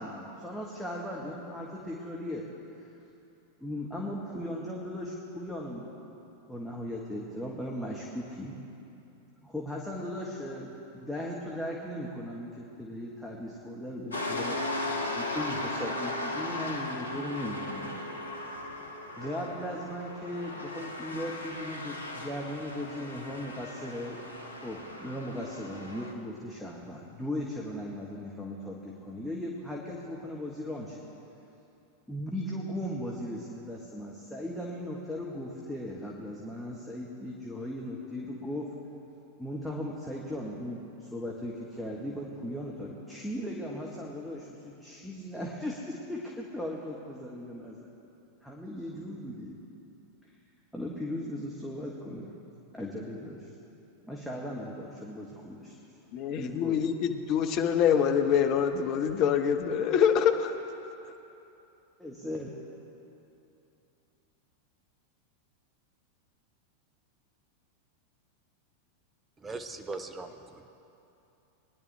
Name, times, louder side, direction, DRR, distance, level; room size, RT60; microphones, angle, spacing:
voice 1, 0.0-2.4 2.8-2.9 3.6-5.9 6.5-8.6 9.4-14.6 15.1-18.0 19.2-24.2 24.6-31.0 32.1-38.7 39.4-47.9 48.4-49.6 50.7-52.4 52.7-53.5 54.0-55.8 56.4-56.8 62.0-62.5, left 1 dB, ahead, -4 dB, 1.3 m, -37 dB
sound 1, 14.1-26.1, left 2 dB, 80° left, 1.1 m, -37 dB
voice 2, 56.1-60.5, left 8 dB, 40° left, 6 dB, 0.8 m, -25 dB
voice 3, 69.4-70.7, right 3 dB, 15° right, 7 dB, 0.8 m, -40 dB
21.0 x 10.5 x 3.4 m, 2.9 s
figure-of-eight pair, 90°, 0 cm